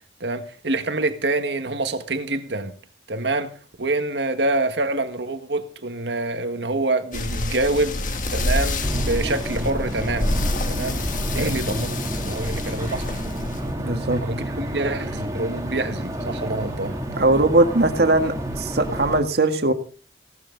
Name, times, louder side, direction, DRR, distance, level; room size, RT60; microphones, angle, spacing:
voice 1, 0.2-2.7 3.1-3.5 3.8-8.0 8.3-11.0 11.3-13.2 14.2-17.0, right 2 dB, 85° right, 1.7 m, -26 dB
sound 1, 7.1-13.7, left 1 dB, 45° left, 1.7 m, -27 dB
sound 2, 8.8-19.2, right 1 dB, 20° right, 2.6 m, -30 dB
voice 2, 13.8-14.2 17.2-19.7, right 2 dB, 65° right, 1.8 m, -20 dB
17.0 x 12.5 x 3.9 m
head